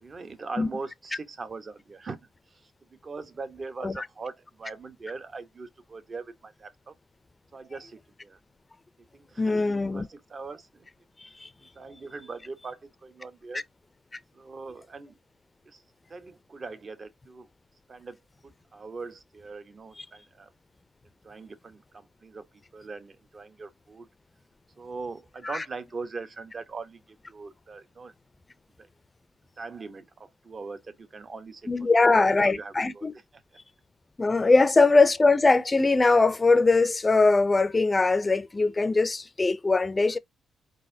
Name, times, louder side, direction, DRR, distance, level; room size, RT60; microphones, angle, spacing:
voice 1, 0.0-2.2 2.5-2.6 3.0-6.9 7.5-8.4 9.1-9.7 9.9-10.9 11.7-13.6 14.3-15.1 15.7-15.8 16.1-17.5 17.9-20.5 21.2-22.5 22.7-24.1 24.8-28.1 28.8-28.9 29.6-31.7 32.0-33.1 33.3-33.4, right 4 dB, 40° right, 0.9 m, -41 dB
voice 2, 9.4-10.1 11.2-11.5 25.4-25.6 31.7-33.1 34.2-40.2, left 3 dB, 25° left, 0.5 m, -21 dB
4.4 x 4.0 x 2.6 m
cardioid pair, 95°, 0 cm